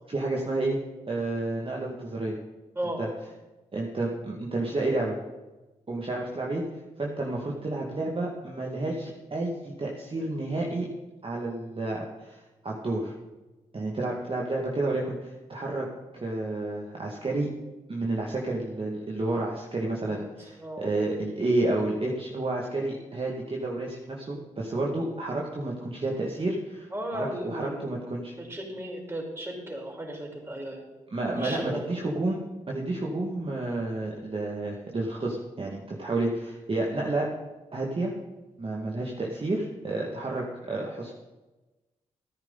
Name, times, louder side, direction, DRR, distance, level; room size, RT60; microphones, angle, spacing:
voice 1, 0.1-0.8 1.1-2.4 3.0-3.1 3.7-5.2 5.9-6.6 7.0-10.9 11.2-13.1 13.7-15.9 16.1-17.5 17.9-28.3 31.1-32.4 32.7-37.3 37.7-38.1 38.6-41.1, right 2 dB, 40° right, -3 dB, 2.2 m, -30 dB
voice 2, 26.9-27.8 28.4-30.8 31.4-31.9, right 1 dB, 15° right, -1 dB, 5.0 m, -35 dB
13.5 x 10.0 x 4.1 m, 1.1 s
supercardioid pair, 40°, 14 cm